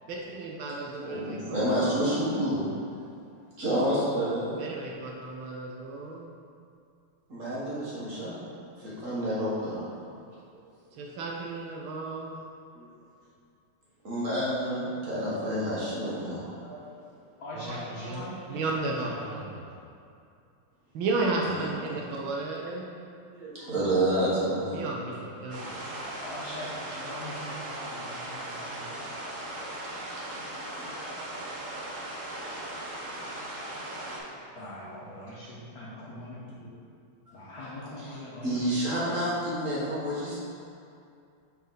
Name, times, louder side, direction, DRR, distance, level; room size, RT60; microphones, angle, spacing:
voice 1, 0.1-2.2 4.6-6.3 11.0-12.3 17.6-17.8 18.0-18.2 18.5-19.8 20.9-22.9 24.7-26.0, right 3 dB, 75° right, -1 dB, 1.4 m, -34 dB
voice 2, 1.0-2.6 3.6-4.6 7.3-8.3 8.8-9.9 12.7-12.9 14.0-16.9 21.4-21.9 23.3-24.8 34.0-34.2 34.4-34.5 38.4-40.4, right 1 dB, 40° right, -9 dB, 1.5 m, -29 dB
voice 3, 17.4-19.4 26.2-29.0 33.8-36.7 37.3-38.7, equal, 50° left, -9 dB, 1.4 m, -42 dB
sound 1, 25.5-34.2, right 1 dB, 55° right, 0.9 m, -38 dB
5.5 x 4.4 x 3.9 m, 2.5 s
omnidirectional pair, 2.4 m